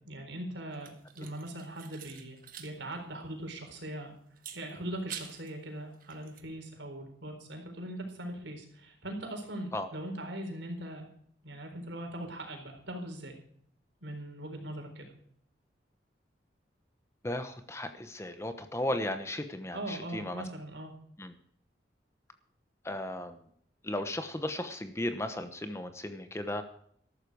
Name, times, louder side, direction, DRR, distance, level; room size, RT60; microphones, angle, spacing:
voice 1, 0.0-4.1 4.5-11.1 11.4-13.3 14.0-15.1 19.7-20.9, right 1 dB, 80° right, 4 dB, 4.2 m, -40 dB
sound 1, 0.7-2.7 3.0-3.1 4.4-5.5 5.9-6.4, right 9 dB, 45° right, 1.5 m, -47 dB
voice 2, 17.2-20.4 21.2-21.3 22.8-23.4 23.8-26.6, left 1 dB, 15° left, 8 dB, 1.0 m, -35 dB
14.0 x 12.5 x 4.8 m, 0.64 s
head